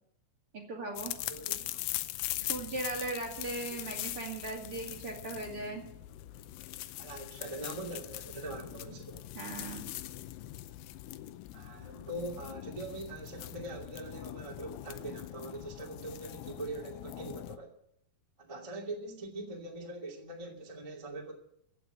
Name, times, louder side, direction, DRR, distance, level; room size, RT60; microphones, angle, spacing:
voice 1, 0.5-1.1 2.5-5.8 9.3-9.9, right 3 dB, 40° right, -1 dB, 2.3 m, -38 dB
sound 1, 1.0-17.6, left 15 dB, 85° left, 3.2 m, -41 dB
voice 2, 1.2-1.6 3.7-3.9 7.0-9.2 11.5-17.7 18.4-21.3, right 2 dB, 15° right, -1 dB, 1.0 m, -42 dB
15.5 x 8.3 x 9.1 m, 0.71 s
omnidirectional pair, 5.6 m